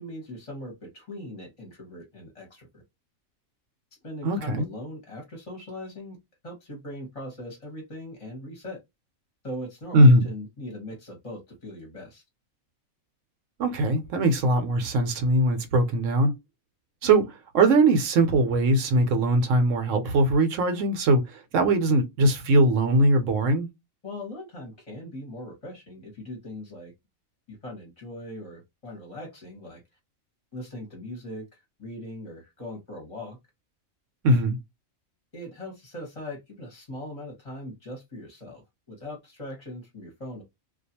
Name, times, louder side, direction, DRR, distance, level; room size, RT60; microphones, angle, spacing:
voice 1, 0.0-2.8 4.0-6.2 6.4-8.8 9.4-12.2 24.0-26.9 27.5-29.8 30.5-33.4 35.3-40.4, left 1 dB, 30° left, 0.8 m, -40 dB
voice 2, 4.2-4.7 9.9-10.3 13.6-16.3 17.0-17.3 17.5-21.2 21.5-23.7 34.2-34.6, right 1 dB, 70° right, 0.9 m, -20 dB
2.4 x 2.2 x 2.7 m
omnidirectional pair, 1.4 m